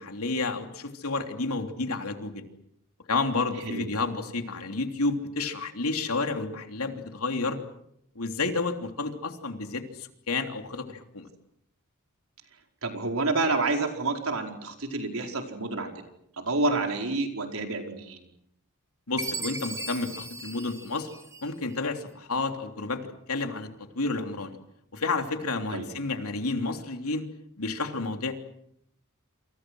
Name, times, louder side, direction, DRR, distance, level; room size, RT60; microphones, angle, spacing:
voice 1, 0.0-2.4 3.1-7.6 8.1-11.3 19.1-21.1 21.4-23.0 23.3-23.7 23.9-24.6 24.9-27.2 27.6-28.3, left 3 dB, 90° left, 5 dB, 3.2 m, -30 dB
voice 2, 12.8-15.9 16.4-18.2 25.7-25.9, right 3 dB, 70° right, 3 dB, 4.7 m, -28 dB
Chime, 19.2-21.7, right 3 dB, 15° right, 1.6 m, -37 dB
28.5 x 27.5 x 6.3 m, 0.76 s
head